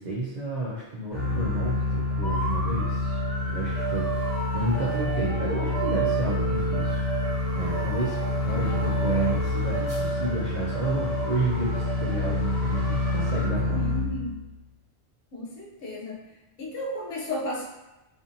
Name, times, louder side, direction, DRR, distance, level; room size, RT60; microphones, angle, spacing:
voice 1, 0.0-3.2 3.4-13.8, right 2 dB, 60° right, -6 dB, 0.5 m, -31 dB
sound 1, 1.1-14.5, left 2 dB, 40° left, 1.1 m, -28 dB
siren of the fire truck, 2.2-13.5, right 4 dB, 5° left, 1.1 m, -33 dB
voice 2, 13.7-14.5 15.3-16.3 16.6-17.7, left 1 dB, 70° left, -3 dB, 0.9 m, -33 dB
2.5 x 2.5 x 2.6 m, 1.0 s
omnidirectional pair, 1.2 m